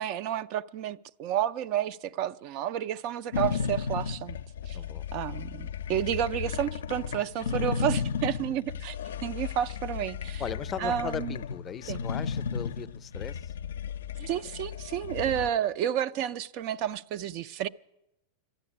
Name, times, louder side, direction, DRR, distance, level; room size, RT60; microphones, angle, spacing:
voice 1, 0.0-4.4 4.7-4.8 5.1-9.0 9.2-10.4 10.8-11.4 11.9-12.0 14.2-17.7, right 10 dB, 50° right, 0.4 m, -31 dB
sound 1, 3.3-15.5, left 6 dB, 85° left, 0.4 m, -34 dB
voice 2, 4.7-5.1 10.4-13.5, left 7 dB, 25° left, 0.5 m, -38 dB
12.0 x 9.2 x 9.8 m
hypercardioid pair, 120°, 0 cm